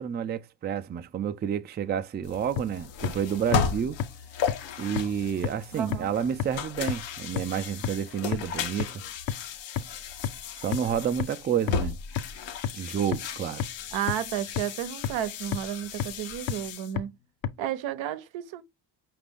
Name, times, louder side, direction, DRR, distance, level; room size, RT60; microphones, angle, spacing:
voice 1, 0.0-4.0 4.8-9.0 10.6-12.0 12.7-13.6, right 8 dB, 25° right, 0.4 m, -29 dB
sound 1, 2.2-16.9, left 6 dB, 75° left, 0.8 m, -35 dB
sound 2, 2.6-2.7 3.0-3.1 3.5-3.6 4.0-4.1 4.5-4.6 5.0-5.1 5.4-5.5 5.9-6.0 6.4-6.5 6.9-7.0 7.4-7.5 7.8-7.9 8.3-8.4 8.8-8.9 9.3-9.4 9.8-9.9 10.2-10.3 10.7-10.8 11.2-11.3 11.7-11.8 12.2-12.3 12.6-12.7 13.1-13.2 13.6-13.7 14.1-14.2 14.6-14.7 15.0-15.1 15.5-15.6 16.0-16.1 16.5-16.6 17.0-17.1 17.4-17.5, left 9 dB, 50° left, 0.6 m, -27 dB
voice 2, 5.7-6.1 13.9-17.1 17.6-18.6, right 11 dB, 80° right, 0.7 m, -32 dB
5.1 x 2.6 x 3.4 m
supercardioid pair, 70°, 45 cm